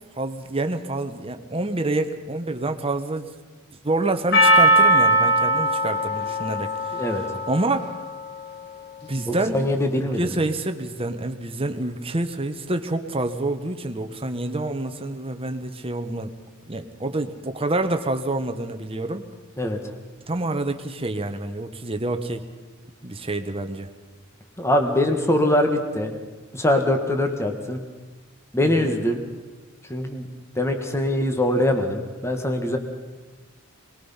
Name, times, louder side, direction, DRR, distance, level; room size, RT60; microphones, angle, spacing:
voice 1, 0.2-3.3 3.8-6.7 7.5-7.9 9.1-16.3 16.7-19.2 20.3-22.4 23.0-23.9 28.6-28.9, right 2 dB, 25° right, 7 dB, 1.3 m, -27 dB
Percussion, 4.3-8.6, right 1 dB, 50° left, 2.0 m, -20 dB
voice 2, 9.3-10.2 19.6-19.8 24.6-26.1 26.5-27.8 28.5-29.2 29.9-30.3 30.6-32.8, left 1 dB, 15° left, 5 dB, 1.7 m, -22 dB
23.0 x 21.0 x 5.8 m, 1.2 s
head